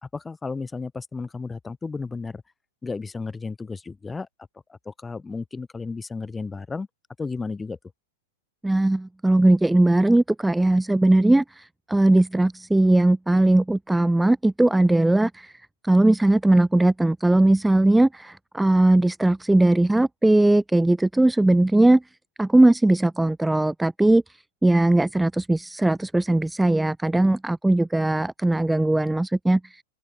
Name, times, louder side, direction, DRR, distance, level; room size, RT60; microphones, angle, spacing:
voice 1, 0.0-2.4 2.8-4.3 4.7-6.9 7.2-7.8, left 4 dB, 10° left, 4.2 m, -33 dB
voice 2, 8.6-15.5 15.8-22.0 22.4-24.2 24.6-29.8, right 2 dB, 5° right, 0.7 m, -19 dB
open air
figure-of-eight pair, 100°, 0 cm